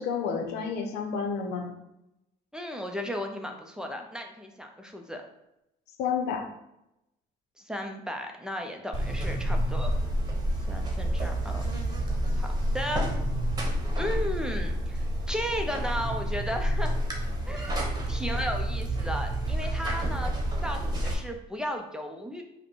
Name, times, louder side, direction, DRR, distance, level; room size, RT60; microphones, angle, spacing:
voice 1, 0.0-1.7 6.0-6.5, left 6 dB, 85° left, 4 dB, 0.7 m, -30 dB
voice 2, 2.5-5.2 7.6-9.9 10.7-11.6 12.4-12.5 12.7-13.1 14.0-16.9 17.5-20.3 20.6-22.4, equal, 5° right, 3 dB, 0.5 m, -35 dB
Buzz, 8.9-21.1, right 1 dB, 25° right, 1.0 m, -29 dB
5.1 x 2.2 x 4.5 m, 0.87 s
cardioid pair, 110°, 17 cm